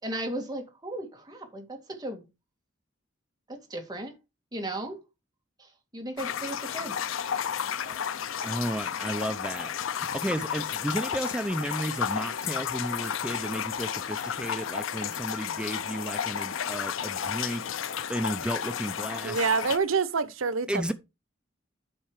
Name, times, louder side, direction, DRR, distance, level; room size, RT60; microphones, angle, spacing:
voice 1, 0.0-2.2 3.5-4.1 4.5-5.0 5.6-5.7 5.9-6.9 7.8-8.1, right 1 dB, 20° right, 2.5 m, -36 dB
sound 1, 6.2-19.8, left 8 dB, 70° left, 0.5 m, -32 dB
voice 2, 8.4-19.4 20.7-20.9, right 1 dB, 5° right, 0.5 m, -33 dB
voice 3, 19.2-20.9, right 5 dB, 90° right, 0.8 m, -26 dB
9.0 x 5.5 x 4.8 m
head